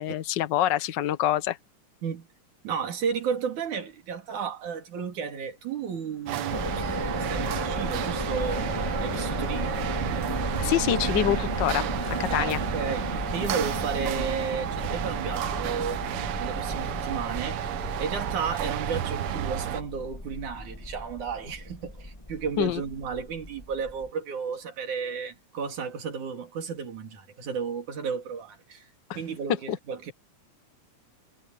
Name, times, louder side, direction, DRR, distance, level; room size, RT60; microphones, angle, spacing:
voice 1, 0.0-1.6 10.6-12.6 22.6-22.8 29.1-29.2 29.7-29.8, left 12 dB, 65° left, 1.1 m, -26 dB
voice 2, 2.6-6.8 7.1-8.7 9.0-9.8 12.3-16.0 16.4-17.6 18.0-28.9 29.2-30.1, right 6 dB, 85° right, 4.2 m, -33 dB
sound 1, 5.6-11.1, left 1 dB, 30° left, 8.4 m, -47 dB
sound 2, 6.3-19.8, right 11 dB, 70° right, 1.4 m, -32 dB
sound 3, 6.5-24.1, left 1 dB, 10° left, 1.9 m, -34 dB
omnidirectional pair, 3.4 m